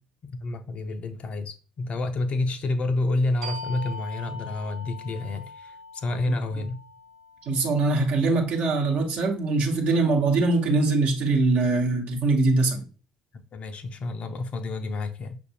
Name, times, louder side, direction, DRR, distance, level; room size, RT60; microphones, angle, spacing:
voice 1, 0.2-6.8 13.5-15.4, left 2 dB, 40° left, 0.5 m, -29 dB
sound 1, 3.4-8.7, left 2 dB, 80° right, 0.6 m, -41 dB
voice 2, 7.4-12.8, right 3 dB, 55° right, 1.0 m, -22 dB
5.9 x 2.6 x 2.8 m
figure-of-eight pair, 55°, 3 cm